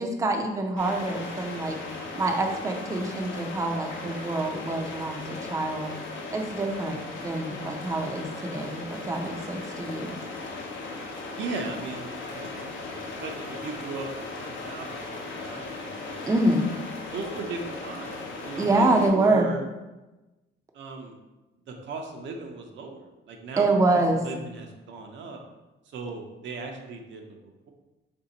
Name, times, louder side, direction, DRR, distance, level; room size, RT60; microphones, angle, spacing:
voice 1, 0.0-1.8 2.2-5.9 6.3-7.0 7.2-10.2 16.3-16.7 18.6-19.5 23.6-24.2, right 2 dB, 15° right, 2 dB, 0.5 m, -26 dB
sound 1, 0.8-19.1, left 3 dB, 70° left, 0.8 m, -37 dB
voice 2, 11.4-16.2 17.1-19.7 20.7-21.2 21.7-25.4 25.9-27.7, right 3 dB, 70° right, 2 dB, 0.6 m, -37 dB
3.4 x 2.7 x 4.0 m, 1.1 s
cardioid pair, 90°, 20 cm